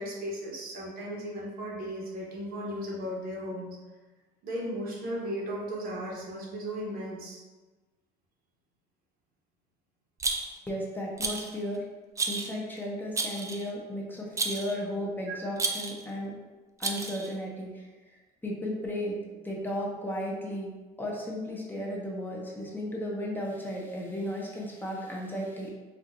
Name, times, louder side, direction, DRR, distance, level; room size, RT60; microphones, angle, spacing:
voice 1, 0.0-3.8 4.4-7.4 15.3-15.4, equal, 60° right, -3 dB, 1.0 m, -36 dB
Rattle, 10.2-10.7 11.2-11.6 12.2-12.6 13.2-13.7 14.4-14.8 15.6-16.0 16.8-17.3, right 3 dB, 20° right, 0.3 m, -32 dB
voice 2, 10.7-11.8 12.3-16.3 16.8-19.2 19.4-20.7 21.0-25.7, equal, 10° left, -3 dB, 0.6 m, -35 dB
4.4 x 2.4 x 2.5 m, 1.2 s
cardioid pair, 110°, 17 cm